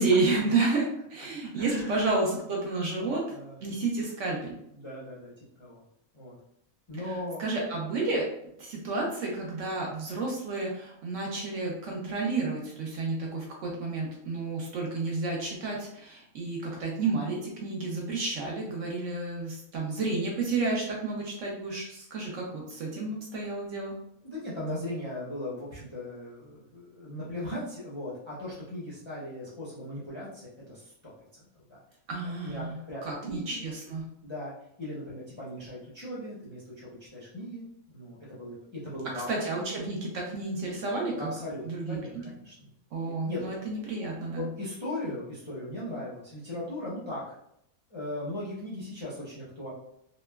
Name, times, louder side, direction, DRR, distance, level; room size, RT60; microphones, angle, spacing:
voice 1, 0.0-3.2 3.6-4.5 7.0-7.1 7.4-8.2 8.6-23.9 32.1-32.8 33.0-34.0 39.3-41.3 41.6-42.3 42.9-44.5, right 3 dB, 65° right, -2 dB, 0.8 m, -31 dB
voice 2, 1.5-2.0 2.9-3.6 4.7-5.3 5.6-5.8 6.1-6.3 6.9-7.4 24.2-31.1 31.7-31.8 32.4-33.6 34.2-34.5 34.8-39.3 41.1-42.5 43.2-43.5 44.3-47.3 47.9-49.7, left 1 dB, 40° left, -8 dB, 0.4 m, -38 dB
2.9 x 2.2 x 2.2 m, 0.75 s
omnidirectional pair, 1.6 m